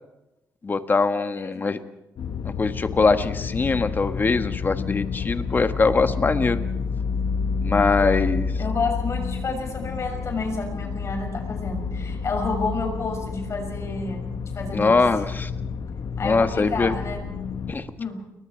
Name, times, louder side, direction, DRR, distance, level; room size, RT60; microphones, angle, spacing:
voice 1, 0.6-1.8 2.6-6.6 7.6-8.5 14.7-15.5 16.2-16.9 17.7-17.8, left 4 dB, 30° left, 9 dB, 1.5 m, -22 dB
sound 1, 2.2-17.7, left 5 dB, 70° left, 1.6 m, -29 dB
voice 2, 8.6-15.0 16.2-17.3 18.0-18.2, left 3 dB, 45° left, 3 dB, 6.5 m, -30 dB
30.0 x 22.5 x 4.6 m, 0.92 s
cardioid pair, 135°, 7 cm